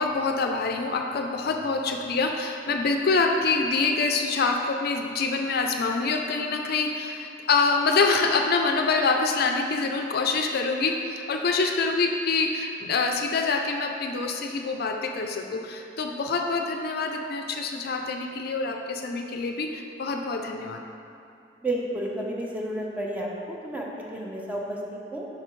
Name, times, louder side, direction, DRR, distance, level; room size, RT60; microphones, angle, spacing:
voice 1, 0.0-20.8, left 4 dB, 55° left, 3 dB, 0.5 m, -26 dB
voice 2, 21.6-25.3, right 1 dB, 10° right, -3 dB, 0.8 m, -31 dB
8.2 x 5.9 x 3.1 m, 2.6 s
head